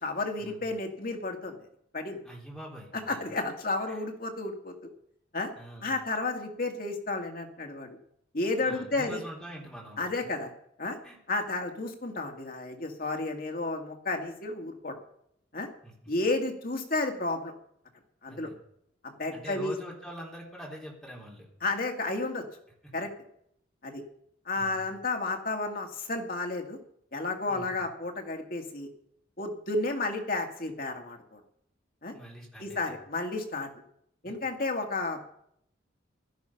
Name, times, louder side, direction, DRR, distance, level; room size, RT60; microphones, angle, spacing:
voice 1, 0.0-1.6 1.9-2.2 3.1-4.9 5.3-5.5 5.8-8.0 8.3-9.2 10.0-10.5 10.8-11.0 11.3-15.0 15.5-15.7 16.1-17.5 18.2-18.5 19.0-19.7 21.6-22.4 22.9-23.1 23.8-24.0 24.5-26.8 27.1-28.9 29.4-31.4 32.0-32.1 32.6-33.7 34.2-35.2, left 2 dB, 50° left, 3 dB, 2.0 m, -32 dB
voice 2, 2.2-3.2 3.9-4.0 5.6-5.9 8.6-10.0 11.0-11.2 15.8-15.9 18.3-18.5 19.3-21.5 22.8-22.9 24.6-24.9 27.5-27.8 32.1-32.9, equal, ahead, -3 dB, 3.4 m, -44 dB
16.5 x 12.5 x 5.7 m, 0.73 s
head